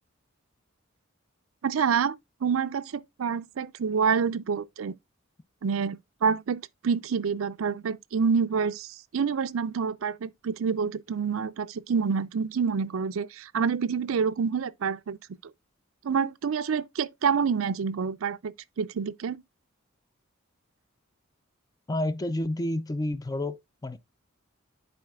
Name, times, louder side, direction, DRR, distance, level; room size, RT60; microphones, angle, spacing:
voice 1, 1.6-2.2 2.4-4.9 5.6-15.2 16.0-19.4, right 6 dB, 80° right, 0.5 m, -27 dB
voice 2, 21.9-24.0, left 1 dB, 20° left, 0.4 m, -30 dB
10.5 x 4.3 x 2.3 m
head